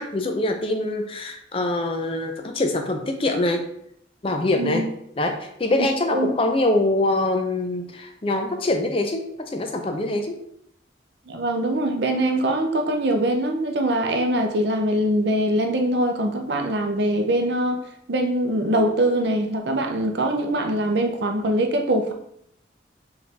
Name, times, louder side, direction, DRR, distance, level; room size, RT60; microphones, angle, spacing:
voice 1, 0.0-3.7 4.2-4.9 5.2-10.4, left 2 dB, 30° left, 5 dB, 0.5 m, -24 dB
voice 2, 11.3-17.8 18.1-22.1, right 1 dB, 65° right, 4 dB, 0.6 m, -23 dB
4.7 x 3.3 x 3.3 m, 0.72 s
head